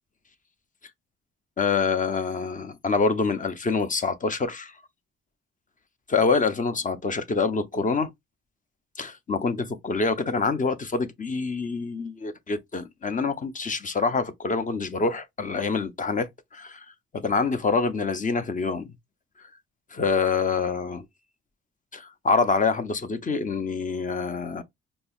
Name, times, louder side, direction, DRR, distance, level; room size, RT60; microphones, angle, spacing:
voice 1, 1.6-4.7 6.1-8.1 9.0-16.8 17.1-18.9 19.9-21.0 21.9-24.6, left 4 dB, 25° left, 0.6 m, -26 dB
5.3 x 2.1 x 2.3 m
cardioid pair, 90°, 30 cm